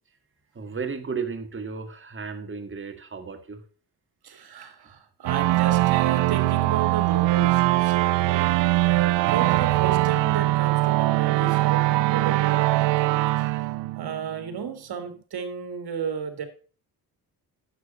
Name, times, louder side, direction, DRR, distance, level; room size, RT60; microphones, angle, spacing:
voice 1, 0.5-3.6, right 5 dB, 30° right, 6 dB, 1.7 m, -34 dB
voice 2, 4.2-13.5 14.0-16.5, right 7 dB, 60° right, 8 dB, 2.2 m, -34 dB
sound 1, 5.3-14.6, right 18 dB, 85° right, 0.6 m, -22 dB
9.4 x 7.3 x 5.2 m, 0.38 s
supercardioid pair, 65°, 42 cm